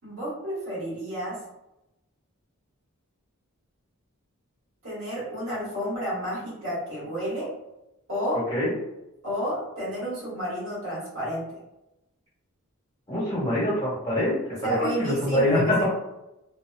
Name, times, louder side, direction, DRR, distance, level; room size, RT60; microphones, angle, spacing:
voice 1, 0.0-1.4 4.8-7.5 8.1-8.4 9.2-11.6 14.6-15.9, equal, 60° right, -7 dB, 1.4 m, -31 dB
voice 2, 13.1-15.9, left 1 dB, 20° left, -9 dB, 1.4 m, -25 dB
2.8 x 2.2 x 2.3 m, 0.92 s
head